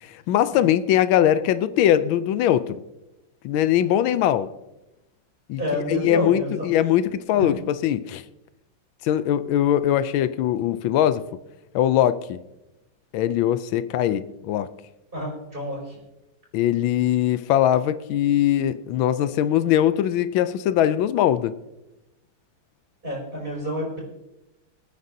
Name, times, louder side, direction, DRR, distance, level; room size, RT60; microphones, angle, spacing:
voice 1, 0.0-2.8 3.4-4.5 5.5-5.6 5.9-8.2 9.0-11.2 11.7-12.4 13.1-14.7 16.5-21.5, left 11 dB, 90° left, 1.4 m, -21 dB
voice 2, 5.6-6.7 7.3-7.5 15.1-16.0 23.0-24.0, equal, 25° right, 5.6 m, -29 dB
25.0 x 9.5 x 2.8 m
omnidirectional pair, 2.1 m